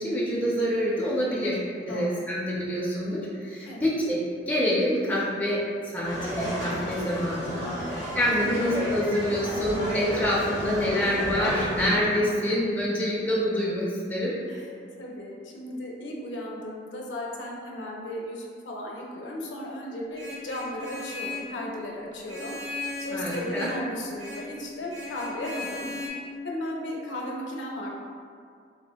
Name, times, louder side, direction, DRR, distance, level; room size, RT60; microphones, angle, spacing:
voice 1, 0.0-1.6 1.9-4.2 4.5-5.6 5.9-14.3 23.1-23.7, equal, 10° left, -7 dB, 0.4 m, -26 dB
voice 2, 1.8-2.2 3.7-3.9 7.8-8.0 8.4-8.5 12.1-12.4 14.5-14.7 15.0-25.8 26.4-27.9, left 1 dB, 80° left, -2 dB, 0.5 m, -36 dB
sound 1, 6.0-12.0, equal, 70° right, 1.5 m, -32 dB
Vehicle horn car horn honking, 20.1-21.5 22.3-23.8 24.2-24.5 24.9-26.1, left 3 dB, 40° right, 0.6 m, -37 dB
3.4 x 2.0 x 2.2 m, 2.2 s
head